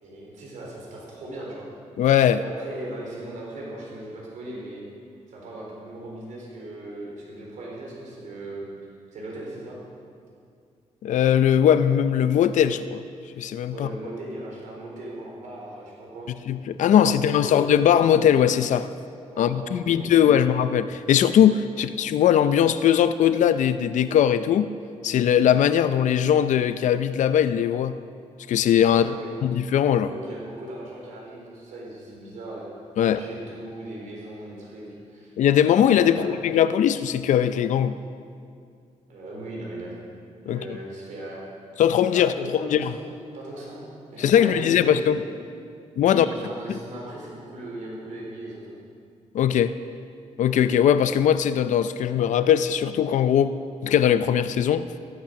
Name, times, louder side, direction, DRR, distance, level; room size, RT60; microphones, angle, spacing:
voice 1, 0.0-1.7 2.4-4.8 5.3-8.7 9.1-9.8 13.7-16.3 16.9-17.6 19.3-20.5 21.7-21.8 28.8-29.4 30.0-32.6 33.0-35.3 36.0-36.4 39.1-40.0 40.5-41.4 42.1-43.0 43.3-43.8 44.1-45.0 46.1-48.8, right 1 dB, 85° right, -3 dB, 4.2 m, -38 dB
voice 2, 2.0-2.4 11.0-13.0 13.4-13.9 16.5-18.9 19.4-24.7 25.0-28.0 28.5-29.1 29.4-30.1 33.0-33.2 35.4-38.0 40.5-40.7 41.8-42.9 44.2-45.2 46.0-46.3 46.7-46.8 49.3-49.7 50.4-53.6 53.8-54.8, left 9 dB, 80° left, 12 dB, 0.5 m, -20 dB
15.0 x 12.0 x 5.9 m, 2.4 s
cardioid pair, 90°, 13 cm